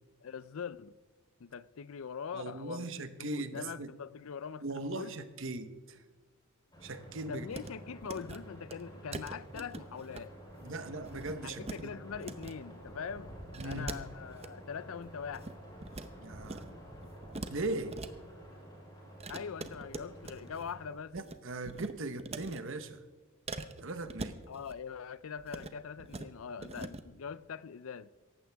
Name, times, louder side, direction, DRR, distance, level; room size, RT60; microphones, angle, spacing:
voice 1, 0.2-1.0 1.4-2.9 3.2-5.1 7.3-10.3 11.4-13.3 13.6-15.6 19.3-21.2 24.5-28.1, left 6 dB, 70° left, 0.5 m, -42 dB
voice 2, 2.3-3.9 4.6-6.0 6.8-7.5 10.6-11.9 13.6-13.9 16.2-16.6 17.5-18.0 21.1-23.0 23.8-24.4, right 2 dB, 60° right, 1.0 m, -39 dB
sound 1, 6.7-20.9, right 1 dB, 20° left, 4.5 m, -50 dB
sound 2, 7.5-7.7 8.0-8.4 8.7-8.8 9.1-10.2 10.5-10.7 11.0-11.8 12.1-12.5 13.5-14.5 15.0-16.1 16.4-16.7 17.0-18.1 19.2-20.7 21.0-21.4 21.6-22.6 23.5-24.8 25.4-25.7 26.0-26.3 26.6-27.0, right 3 dB, 30° right, 0.7 m, -43 dB
17.5 x 15.0 x 3.5 m
head